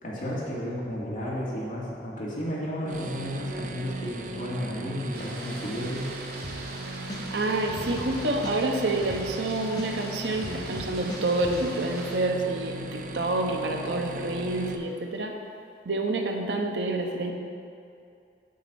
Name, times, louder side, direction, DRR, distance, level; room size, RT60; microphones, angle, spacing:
voice 1, 0.0-6.0, equal, 50° left, -7 dB, 2.3 m, -33 dB
sound 1, 2.8-14.8, right 2 dB, 45° right, 0.6 m, -38 dB
sound 2, 5.1-12.2, right 2 dB, 60° right, 1.4 m, -43 dB
sound 3, 6.4-6.8 7.1-9.5 9.8-11.6, left 1 dB, 25° left, 1.0 m, -39 dB
voice 2, 7.3-15.3 15.8-17.3, right 2 dB, 80° right, 3 dB, 0.8 m, -28 dB
8.9 x 4.3 x 7.0 m, 2.6 s
head